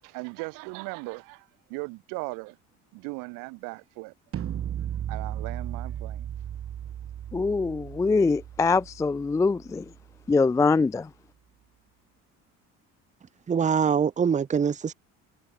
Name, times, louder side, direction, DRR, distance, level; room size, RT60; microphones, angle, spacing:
voice 1, 0.0-2.6 2.9-4.1 5.1-6.3, right 29 dB, 80° right, 7.4 m, -38 dB
sound 1, 4.3-10.3, right 10 dB, 40° right, 2.9 m, -36 dB
voice 2, 7.3-9.9 10.3-11.1, left 4 dB, 10° left, 0.3 m, -23 dB
voice 3, 13.5-14.9, right 7 dB, 20° right, 1.0 m, -24 dB
cardioid pair, 120°, 32 cm